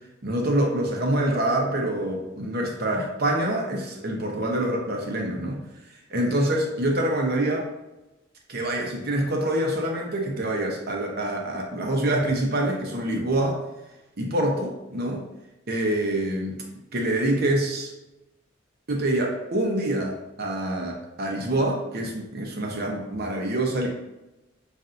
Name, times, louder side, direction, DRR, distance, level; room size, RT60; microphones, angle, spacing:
voice 1, 0.2-5.6 6.1-7.7 8.5-13.6 14.2-15.2 15.7-16.6 16.9-17.9 18.9-23.9, right 1 dB, 50° right, 0 dB, 0.7 m, -26 dB
5.5 x 2.6 x 2.5 m, 1.0 s
head